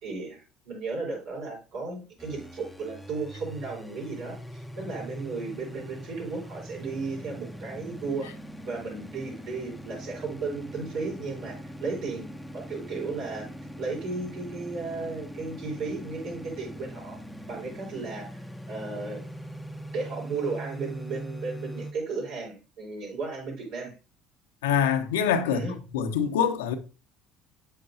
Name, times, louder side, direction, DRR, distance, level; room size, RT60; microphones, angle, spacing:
voice 1, 0.0-8.3 8.6-13.5 13.8-17.2 17.5-19.2 19.9-23.9 25.5-25.7, right 4 dB, 65° right, 5.4 m, -35 dB
sound 1, 2.2-21.9, equal, 5° left, 1.0 m, -42 dB
voice 2, 24.6-25.6 25.9-26.7, left 8 dB, 85° left, 0.9 m, -24 dB
8.2 x 8.0 x 2.8 m
hypercardioid pair, 70°, 0 cm